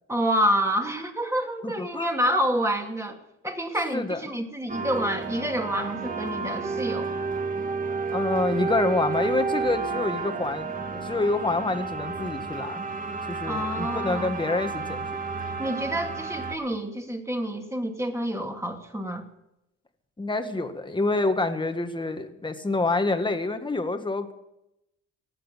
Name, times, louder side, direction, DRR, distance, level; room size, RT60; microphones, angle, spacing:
voice 1, 0.1-3.2 3.4-7.1 13.5-14.3 15.6-19.2, equal, 10° right, 3 dB, 2.6 m, -28 dB
voice 2, 1.6-2.2 3.9-4.2 8.1-12.8 13.3-15.1 20.2-24.3, left 2 dB, 15° left, 7 dB, 1.7 m, -27 dB
sound 1, 4.7-16.6, right 4 dB, 25° right, 1.8 m, -31 dB
18.0 x 7.8 x 9.0 m, 0.87 s
cardioid pair, 90°, 30 cm